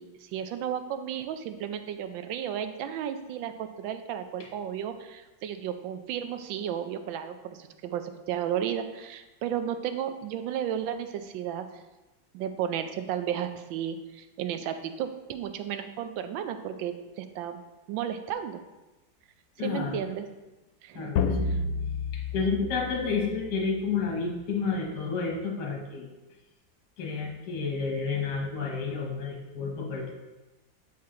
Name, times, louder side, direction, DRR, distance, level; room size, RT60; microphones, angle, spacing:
voice 1, 0.0-11.8 12.3-17.6 17.9-18.6 19.6-20.3 20.8-21.2 21.5-21.6, right 9 dB, 80° right, 8 dB, 1.3 m, -33 dB
voice 2, 19.6-20.1 20.9-21.4 22.3-26.1 27.0-30.1, left 5 dB, 60° left, 0 dB, 1.5 m, -30 dB
sound 1, 21.2-23.8, left 4 dB, 90° left, 1.4 m, -30 dB
7.6 x 4.3 x 3.7 m, 1.1 s
omnidirectional pair, 2.1 m